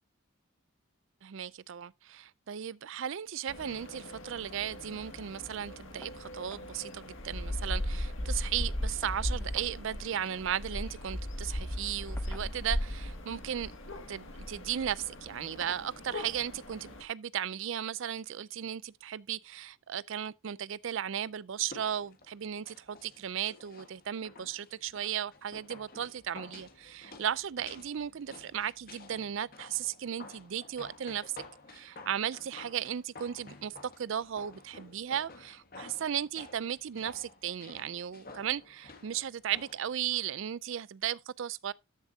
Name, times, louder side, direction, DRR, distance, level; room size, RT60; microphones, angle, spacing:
voice 1, 1.2-13.7 14.1-31.3 31.7-41.7, right 9 dB, 60° right, 0.4 m, -36 dB
sound 1, 3.5-17.0, left 1 dB, 65° left, 1.8 m, -38 dB
sound 2, 6.0-6.2 6.5-6.7 7.1-7.2 7.5-8.1 9.0-9.8 11.0-11.2 12.2-12.8 13.9-14.2 14.6-14.8 15.6-15.9 17.2-17.3 17.8-17.9, left 1 dB, 10° left, 0.7 m, -54 dB
sound 3, 21.6-40.4 40.7-40.8, left 3 dB, 40° left, 1.5 m, -52 dB
13.0 x 7.1 x 2.7 m
head